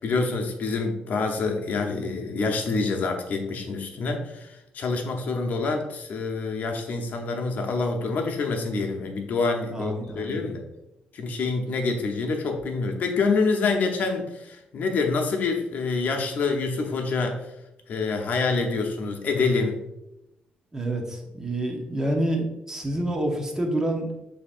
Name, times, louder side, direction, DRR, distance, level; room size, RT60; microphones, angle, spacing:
voice 1, 0.0-10.6 11.1-17.4 17.9-19.8, left 4 dB, 60° left, 3 dB, 0.8 m, -26 dB
voice 2, 9.7-10.5 20.7-24.1, right 1 dB, 15° right, 2 dB, 0.9 m, -28 dB
6.8 x 2.8 x 2.5 m, 0.92 s
cardioid pair, 110°, 3 cm